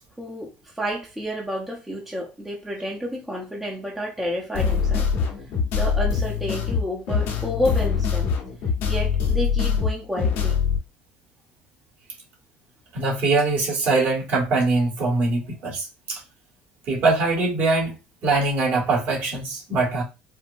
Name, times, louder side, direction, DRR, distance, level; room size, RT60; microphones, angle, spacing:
voice 1, 0.2-5.1 5.4-8.3 8.9-10.6, equal, 5° right, 0.8 m, -30 dB
sound 1, 4.5-10.8, left 6 dB, 75° left, 1.2 m, -23 dB
voice 2, 12.9-16.2 16.9-17.9 18.2-20.0, right 3 dB, 55° right, 2.0 m, -22 dB
4.5 x 2.2 x 2.6 m
supercardioid pair, 105°, 4 cm